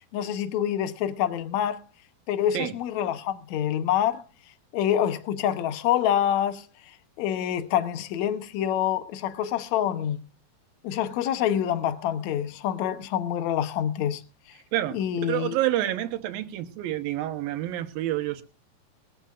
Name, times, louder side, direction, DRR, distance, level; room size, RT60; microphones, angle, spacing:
voice 1, 0.1-1.8 2.3-4.2 4.7-6.7 7.2-10.2 10.8-14.2 14.9-15.6, left 10 dB, 70° left, 1.8 m, -26 dB
voice 2, 14.7-18.4, right 14 dB, 75° right, 2.9 m, -28 dB
22.0 x 13.5 x 2.5 m
omnidirectional pair, 4.3 m